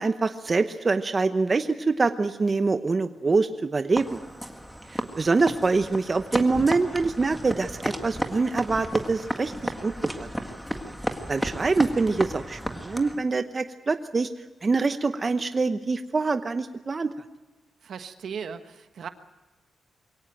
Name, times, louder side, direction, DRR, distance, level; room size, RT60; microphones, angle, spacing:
voice 1, 0.0-4.2 4.9-10.3 11.3-14.3 14.6-17.1, right 3 dB, 35° right, 9 dB, 0.9 m, -25 dB
sound 1, 4.0-13.2, equal, ahead, 1.8 m, -33 dB
voice 2, 17.8-19.1, right 6 dB, 70° right, 9 dB, 1.3 m, -37 dB
22.5 x 17.5 x 9.0 m, 1.1 s
cardioid pair, 95°, 0 cm